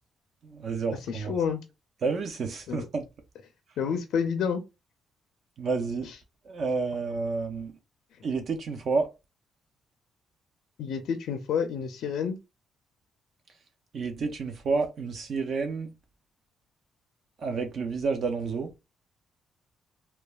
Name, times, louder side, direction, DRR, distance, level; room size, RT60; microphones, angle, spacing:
voice 1, 0.4-1.3 2.0-3.0 5.6-6.1 6.5-7.7 8.2-9.1 13.9-15.9 17.4-18.7, right 4 dB, 60° right, 0.5 m, -30 dB
voice 2, 1.1-1.6 2.7-2.9 3.8-4.6 6.0-6.2 10.8-12.4, left 7 dB, 75° left, 0.4 m, -29 dB
3.0 x 2.2 x 2.3 m
cardioid pair, 90°, 0 cm